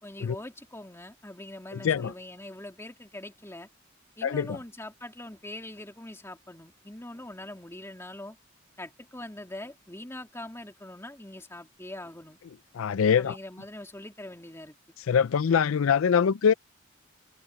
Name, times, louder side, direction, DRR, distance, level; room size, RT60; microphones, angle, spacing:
voice 1, 0.0-3.7 4.2-8.4 8.8-12.4 13.2-14.8, left 1 dB, 15° left, 3.0 m, -43 dB
voice 2, 4.2-4.6 12.8-13.4 15.1-16.5, left 7 dB, 80° left, 0.4 m, -23 dB
head